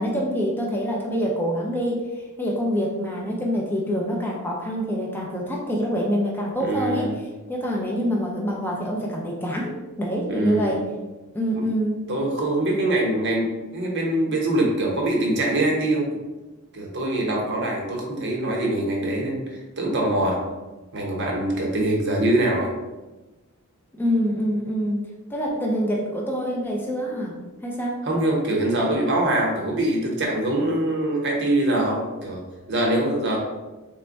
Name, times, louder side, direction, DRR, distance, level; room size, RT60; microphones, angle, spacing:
voice 1, 0.0-2.0 2.4-7.1 7.5-9.7 10.0-10.8 11.3-12.1 24.0-27.3 27.6-28.0, equal, 10° left, -3 dB, 0.5 m, -25 dB
voice 2, 6.6-7.1 10.3-10.7 11.5-11.7 12.1-16.2 16.7-20.4 20.9-22.7 28.0-33.4, right 1 dB, 50° right, -1 dB, 0.9 m, -23 dB
3.4 x 2.2 x 4.0 m, 1.1 s
head